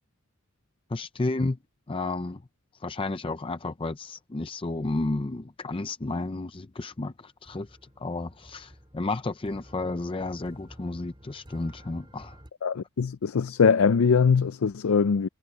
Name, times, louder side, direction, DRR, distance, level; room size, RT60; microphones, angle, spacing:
voice 1, 0.9-1.6 1.9-2.4 2.8-7.7 8.0-12.4, left 2 dB, 25° left, 0.5 m, -32 dB
sound 1, 6.9-12.5, equal, 20° right, 3.8 m, -52 dB
voice 2, 12.6-15.3, left 6 dB, 75° left, 0.5 m, -22 dB
head